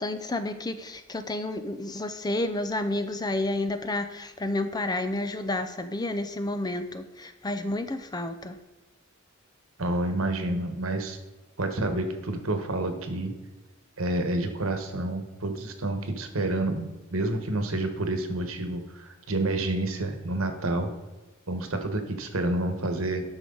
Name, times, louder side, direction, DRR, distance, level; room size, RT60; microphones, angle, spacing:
voice 1, 0.0-8.6, left 2 dB, 20° left, 9 dB, 0.5 m, -30 dB
voice 2, 9.8-11.2 11.6-13.3 14.0-20.9 21.5-23.2, right 2 dB, 70° right, 6 dB, 1.3 m, -29 dB
12.0 x 6.2 x 3.9 m, 1.2 s
head